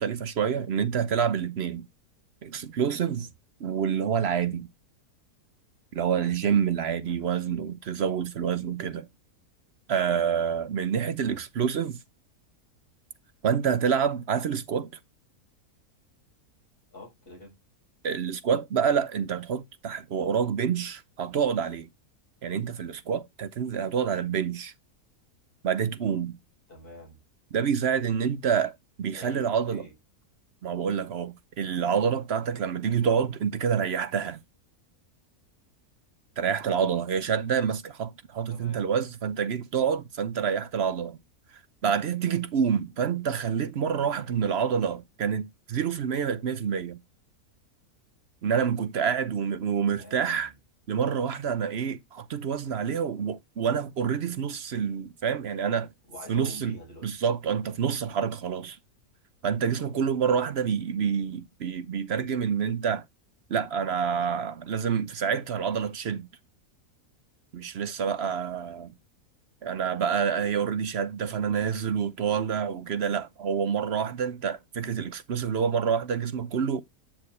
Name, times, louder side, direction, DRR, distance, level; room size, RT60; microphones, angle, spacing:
voice 1, 0.0-1.9 2.4-3.3 3.6-4.7 5.9-9.1 9.9-12.0 13.4-14.9 18.0-21.9 22.4-24.7 25.6-26.4 27.5-29.8 30.6-34.4 36.4-41.2 41.8-47.0 48.4-50.5 50.9-55.9 56.3-56.8 57.0-58.8 59.4-63.0 63.5-66.3 67.5-68.9 69.6-76.8, right 7 dB, 55° right, 0.8 m, -27 dB
voice 2, 16.9-17.5 26.7-27.2 29.1-29.9 38.5-38.8 49.9-50.6 56.1-57.1 70.3-70.5, left 1 dB, 35° left, 6.1 m, -46 dB
8.0 x 7.7 x 3.2 m
omnidirectional pair, 1.6 m